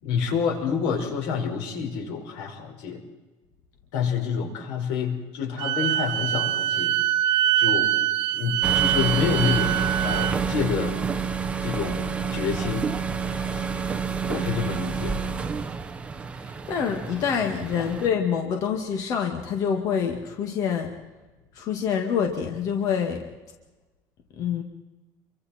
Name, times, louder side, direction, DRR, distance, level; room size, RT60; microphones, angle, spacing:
voice 1, 0.0-3.0 3.9-7.0 7.6-7.9 8.3-11.0 11.6-12.8 13.2-13.7 14.3-15.2 17.8-18.0, left 6 dB, 90° left, 3 dB, 5.1 m, -28 dB
Wind instrument woodwind instrument, 5.6-10.3, right 13 dB, 60° right, 0.8 m, -24 dB
sound 1, 8.6-18.1, right 5 dB, 15° right, 0.9 m, -29 dB
voice 2, 16.7-20.9 21.6-23.2 24.4-24.6, left 7 dB, 45° left, 3 dB, 2.1 m, -26 dB
27.5 x 24.0 x 4.4 m, 1.1 s
cardioid pair, 180°, 8 cm